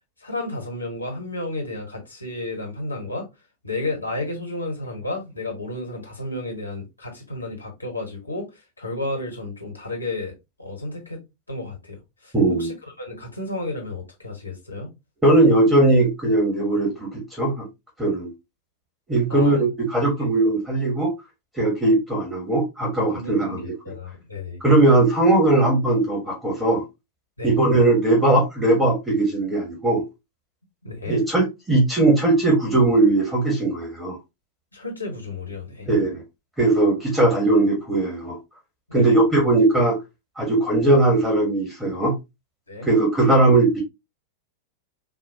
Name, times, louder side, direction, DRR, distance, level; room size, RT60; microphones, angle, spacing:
voice 1, 0.2-3.3 3.6-12.3 12.6-14.9 19.3-19.6 23.1-24.6 27.4-27.5 30.8-31.2 34.7-35.9 38.9-39.2 42.7-42.9, left 2 dB, 85° left, 1.2 m, -32 dB
voice 2, 12.3-12.7 15.2-17.7 18.0-18.3 19.1-19.6 19.9-21.1 21.5-23.7 24.6-26.8 27.4-30.0 31.1-34.2 35.9-36.2 36.6-38.4 38.9-40.0 40.4-42.1 42.8-43.8, right 2 dB, 10° right, 1.3 m, -19 dB
4.1 x 2.3 x 2.7 m
figure-of-eight pair, 90°, 0 cm